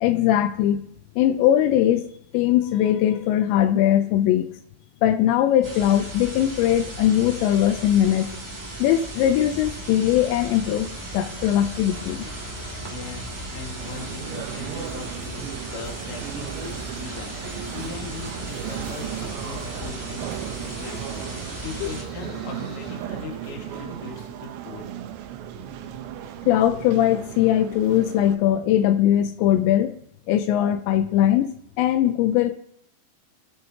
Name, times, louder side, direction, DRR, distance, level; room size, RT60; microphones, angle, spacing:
voice 1, 0.0-0.8 1.2-4.5 5.0-8.3 8.8-10.9 11.1-12.3 21.8-21.9 26.5-30.0 30.3-31.5 31.8-32.6, left 11 dB, 80° left, 9 dB, 2.8 m, -20 dB
sound 1, 5.6-22.0, right 2 dB, 10° right, 1.1 m, -37 dB
sound 2, 9.6-24.0, left 1 dB, 30° right, 1.8 m, -42 dB
voice 2, 12.5-15.5 15.7-24.9, left 4 dB, 50° left, 1 dB, 1.8 m, -40 dB
sound 3, 13.8-28.4, right 11 dB, 80° right, 2.8 m, -36 dB
19.5 x 7.8 x 2.9 m, 0.71 s
omnidirectional pair, 5.3 m